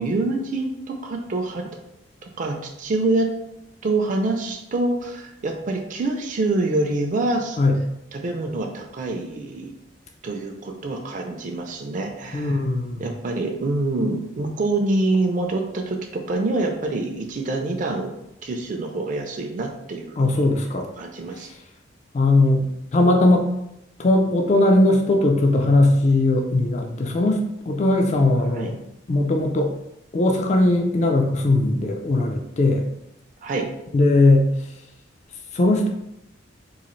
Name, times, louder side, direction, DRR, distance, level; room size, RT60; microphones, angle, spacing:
voice 1, 0.0-1.7 2.2-3.3 3.8-7.6 8.1-9.7 10.2-12.6 13.0-18.1 18.4-20.3 21.0-21.5 28.5-28.7 33.4-33.7, right 2 dB, 40° right, 2 dB, 0.4 m, -26 dB
voice 2, 12.3-13.0 20.2-20.9 22.1-22.7 22.9-23.4 24.0-27.4 27.7-28.8 29.1-29.7 30.1-32.8 33.9-34.5 35.5-35.9, left 2 dB, 35° left, 2 dB, 0.3 m, -19 dB
3.9 x 2.5 x 3.0 m, 0.84 s
head